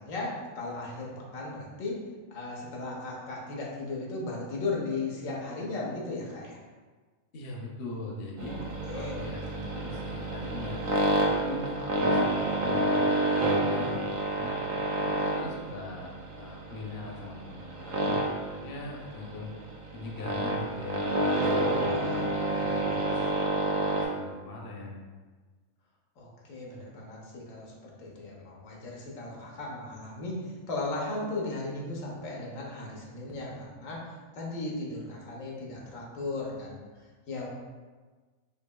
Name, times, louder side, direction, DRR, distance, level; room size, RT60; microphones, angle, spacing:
voice 1, 0.0-2.0 2.3-6.6 8.4-9.5 21.9-22.3 26.2-36.8 37.3-37.5, left 2 dB, 85° left, -3 dB, 1.2 m, -36 dB
voice 2, 7.3-8.5 8.9-10.8 11.2-14.6 15.0-19.5 19.9-22.3 22.6-23.3 23.8-25.0, left 2 dB, 55° left, -2 dB, 0.7 m, -41 dB
sound 1, 8.4-24.1, right 2 dB, 90° right, 1.1 m, -29 dB
4.5 x 2.7 x 2.2 m, 1.4 s
omnidirectional pair, 1.4 m